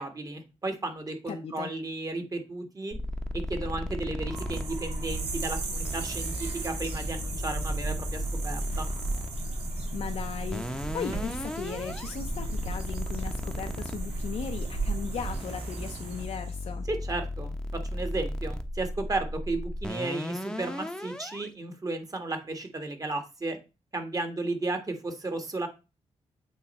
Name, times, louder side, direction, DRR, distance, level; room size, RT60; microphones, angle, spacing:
voice 1, 0.0-2.9 3.5-8.9 16.9-17.5 17.9-23.6 23.9-25.7, right 2 dB, 30° right, 5 dB, 1.5 m, -34 dB
voice 2, 1.3-1.7 9.9-16.9, left 7 dB, 65° left, 4 dB, 0.6 m, -37 dB
sound 1, 2.9-21.5, left 1 dB, 5° left, 0.8 m, -35 dB
sound 2, 4.2-16.2, right 3 dB, 55° right, 2.6 m, -37 dB
sound 3, 4.4-16.7, right 4 dB, 75° right, 2.1 m, -42 dB
8.3 x 3.2 x 4.3 m, 0.29 s
cardioid pair, 80°, 12 cm